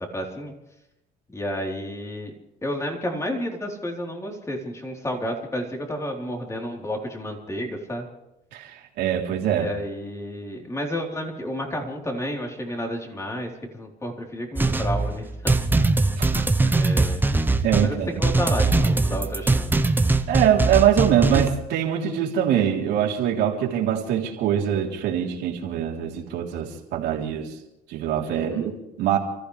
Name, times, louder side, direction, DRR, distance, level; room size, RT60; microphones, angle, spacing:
voice 1, 0.1-0.5 1.3-2.3 2.6-8.1 9.5-15.7 16.7-17.3 17.8-19.7 28.3-28.7, equal, 15° left, 1 dB, 3.8 m, -31 dB
voice 2, 8.5-9.7 16.2-16.9 17.6-18.1 20.3-27.5 27.9-29.2, right 9 dB, 85° right, -1 dB, 3.5 m, -23 dB
sound 1, 14.6-21.5, right 3 dB, 10° right, 0.9 m, -21 dB
29.0 x 14.5 x 3.4 m, 0.88 s
cardioid pair, 110°, 17 cm